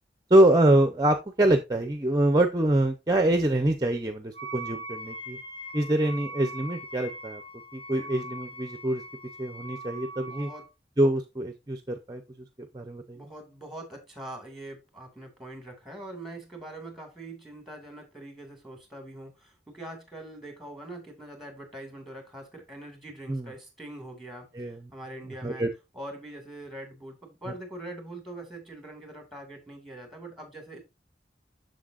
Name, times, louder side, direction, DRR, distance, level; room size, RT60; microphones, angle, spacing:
voice 1, 0.3-5.4 5.7-7.4 7.7-9.0 9.4-10.5 11.0-12.2 12.7-13.2 23.3-23.4 24.5-24.8 25.4-25.7, right 1 dB, 20° right, 8 dB, 0.6 m, -24 dB
Wind instrument woodwind instrument, 4.3-10.7, right 1 dB, 30° left, 1.6 m, -41 dB
voice 2, 7.9-8.3 10.3-10.7 13.1-25.6 25.9-30.8, right 1 dB, ahead, 4 dB, 2.0 m, -43 dB
7.5 x 6.7 x 2.4 m, 0.24 s
head